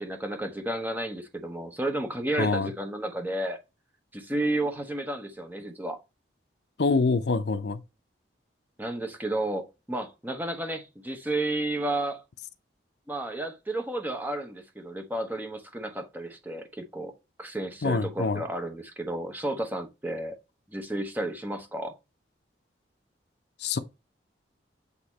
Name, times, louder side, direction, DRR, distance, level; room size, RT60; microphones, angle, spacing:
voice 1, 0.0-3.6 4.1-6.0 8.8-12.2 13.1-17.1 17.4-20.4 20.7-21.9, right 1 dB, 10° right, 0.9 m, -32 dB
voice 2, 2.4-2.7 6.8-7.8 17.8-18.4 23.6-23.8, left 4 dB, 65° left, 0.6 m, -25 dB
8.2 x 2.8 x 4.2 m
head